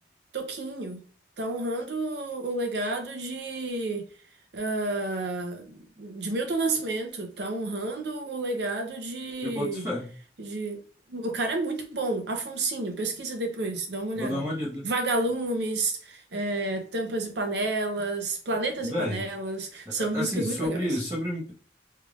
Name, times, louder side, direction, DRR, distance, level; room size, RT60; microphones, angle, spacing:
voice 1, 0.3-1.0 1.4-4.1 4.5-9.8 10.4-10.8 11.1-14.4 14.8-20.8, right 2 dB, 75° right, 0.8 m, -30 dB
voice 2, 9.4-10.1 14.1-14.9 18.8-19.3 19.8-21.5, left 1 dB, 20° right, 1.1 m, -31 dB
3.4 x 3.3 x 2.4 m
head